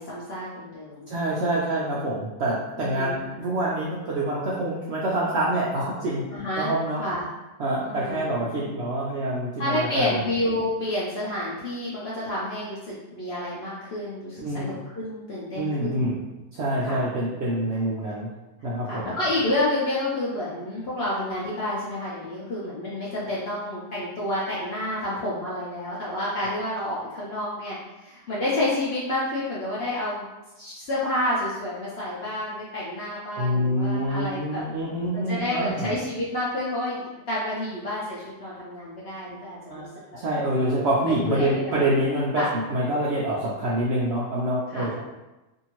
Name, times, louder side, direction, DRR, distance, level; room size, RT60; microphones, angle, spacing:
voice 1, 0.0-1.1 2.8-3.2 6.3-6.7 7.0-7.2 7.8-8.3 9.6-16.2 16.8-17.1 18.9-30.3 30.6-34.6 35.1-39.9 41.1-41.8 42.3-42.5 44.7-44.9, left 1 dB, 60° left, -8 dB, 0.6 m, -29 dB
voice 2, 1.1-6.2 6.6-7.0 7.6-10.2 14.4-14.6 15.5-16.2 16.5-18.3 18.6-19.1 33.4-35.9 39.7-39.9 40.1-45.0, right 1 dB, 90° right, -6 dB, 0.5 m, -26 dB
2.6 x 2.6 x 2.9 m, 1.0 s
omnidirectional pair, 1.7 m